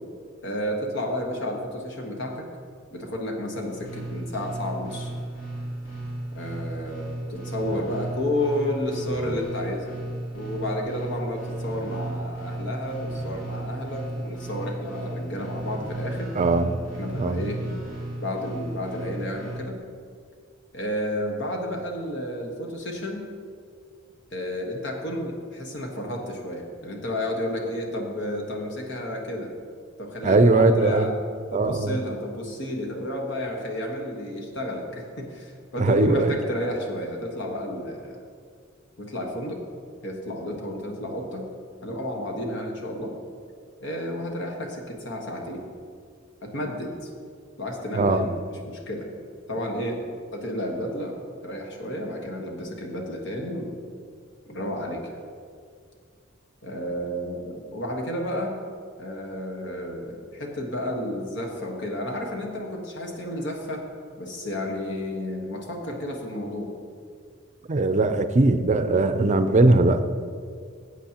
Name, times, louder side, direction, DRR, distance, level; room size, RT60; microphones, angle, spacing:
voice 1, 0.4-2.5 2.9-5.1 6.3-10.0 10.3-16.3 16.9-17.6 18.2-19.8 20.7-23.2 24.3-29.5 30.0-31.1 31.5-38.2 39.0-39.6 40.0-41.5 41.8-43.1 43.8-45.6 46.4-47.1 47.6-48.3 48.6-49.1 49.5-50.0 50.3-53.7 54.5-55.2 56.6-58.6 59.0-63.8 64.2-66.7, left 1 dB, 65° left, 1 dB, 1.4 m, -31 dB
sound 1, 3.7-19.6, right 2 dB, 80° left, 2.9 m, -34 dB
voice 2, 16.4-16.8 17.1-17.4 30.2-31.1 31.5-32.0 35.8-36.4 47.9-48.3 67.7-70.0, right 2 dB, 35° right, 10 dB, 0.5 m, -20 dB
15.5 x 8.1 x 2.9 m, 2.1 s
head